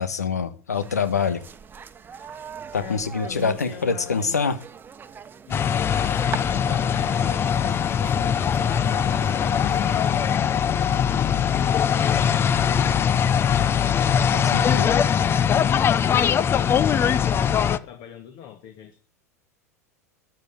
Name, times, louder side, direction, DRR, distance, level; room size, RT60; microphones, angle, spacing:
voice 1, 0.0-1.4 2.7-4.6 14.3-15.0, left 5 dB, 85° left, 12 dB, 1.4 m, -25 dB
sound 1, 0.7-10.4, right 7 dB, 25° right, 1.2 m, -41 dB
voice 2, 2.7-4.4 5.5-10.1 10.7-13.0 15.7-19.0, left 9 dB, 50° left, 5 dB, 2.2 m, -41 dB
sound 2, 5.5-17.8, left 8 dB, 25° left, 0.8 m, -21 dB
13.0 x 10.5 x 7.2 m, 0.41 s
figure-of-eight pair, 85°, 9 cm